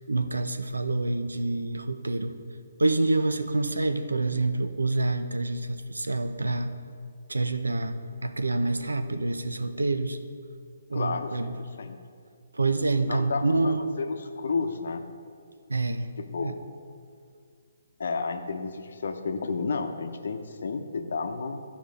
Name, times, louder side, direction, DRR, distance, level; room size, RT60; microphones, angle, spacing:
voice 1, 0.1-2.3 2.8-6.7 7.3-10.2 10.9-11.5 12.5-13.8 15.7-16.1 16.4-16.6, right 2 dB, 90° right, 9 dB, 0.6 m, -27 dB
voice 2, 10.9-11.5 11.8-12.0 13.0-15.0 16.2-16.6 18.0-21.6, left 4 dB, 65° left, 7 dB, 0.8 m, -31 dB
12.0 x 5.1 x 5.2 m, 2.2 s
figure-of-eight pair, 145°, 0 cm